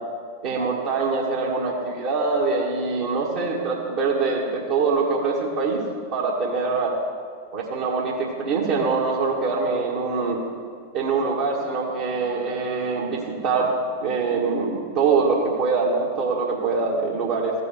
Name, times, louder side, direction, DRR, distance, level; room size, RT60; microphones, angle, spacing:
voice 1, 0.4-5.8 6.1-6.9 7.5-10.4 10.9-17.5, right 4 dB, 50° right, -5 dB, 1.6 m, -24 dB
14.5 x 5.5 x 6.6 m, 2.2 s
figure-of-eight pair, 90°, 0 cm